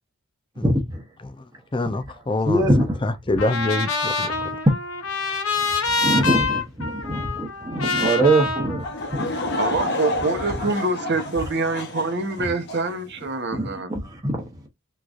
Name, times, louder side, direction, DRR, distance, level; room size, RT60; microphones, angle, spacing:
voice 1, 0.6-1.0 2.5-3.0 6.0-9.3 13.6-14.5, right 1 dB, 15° right, 1.0 m, -23 dB
voice 2, 1.7-2.7 3.0-4.3, left 2 dB, 20° left, 0.5 m, -25 dB
Trumpet, 3.4-9.6, left 4 dB, 75° left, 1.0 m, -26 dB
Laughter / Crowd, 8.8-13.0, left 2 dB, 50° left, 0.8 m, -30 dB
voice 3, 9.5-13.9, right 3 dB, 50° right, 0.9 m, -25 dB
3.7 x 3.1 x 2.5 m
head